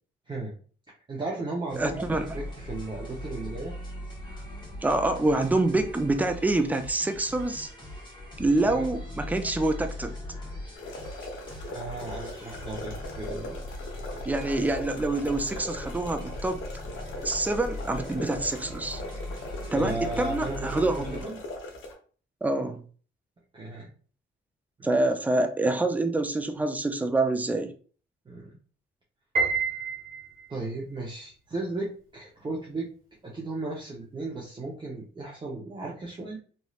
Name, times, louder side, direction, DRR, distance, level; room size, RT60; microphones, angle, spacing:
voice 1, 1.1-3.7 8.7-8.9 11.7-13.6 19.7-21.4 23.5-23.9 24.8-24.9 28.3-28.6 30.5-32.9 33.2-36.4, right 2 dB, 25° right, -4 dB, 0.8 m, -35 dB
sound 1, 1.7-21.2, left 1 dB, 25° left, 1.3 m, -40 dB
voice 2, 1.8-2.4 4.8-7.7 8.4-10.1 14.3-16.7 17.2-19.0 19.7-21.2 22.4-22.8 24.8-27.7, right 2 dB, 10° right, 7 dB, 0.4 m, -26 dB
sound 2, 10.8-21.9, left 2 dB, 80° left, 0.9 m, -40 dB
Piano, 29.3-30.6, right 4 dB, 45° right, 1.3 m, -28 dB
3.2 x 2.6 x 2.4 m, 0.41 s
cardioid pair, 90°, 20 cm